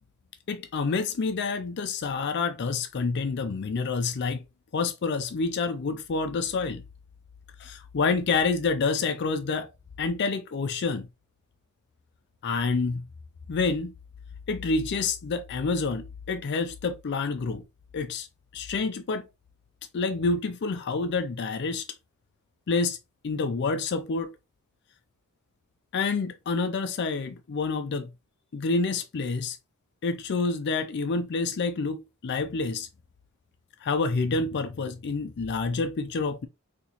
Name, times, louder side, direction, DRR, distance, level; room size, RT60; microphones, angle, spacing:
voice 1, 0.5-4.4 4.7-6.8 7.6-9.7 10.0-11.1 12.4-13.0 13.5-13.9 14.5-17.6 17.9-18.3 18.5-19.2 19.9-21.9 22.7-23.0 23.2-24.3 25.9-28.1 28.5-29.6 30.0-32.9 33.8-36.5, left 4 dB, 50° left, 0.4 m, -28 dB
4.0 x 2.9 x 2.8 m
head